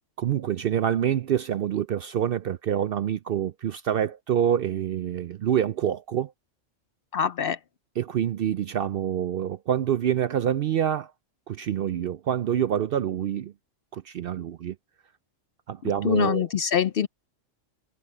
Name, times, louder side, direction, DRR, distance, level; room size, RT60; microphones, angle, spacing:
voice 1, 0.2-6.3 8.0-11.1 11.5-13.5 13.9-14.7 15.7-16.5, right 10 dB, 65° right, 0.6 m, -26 dB
voice 2, 7.1-7.6 15.8-17.1, left 8 dB, 60° left, 0.7 m, -25 dB
omnidirectional pair, 1.3 m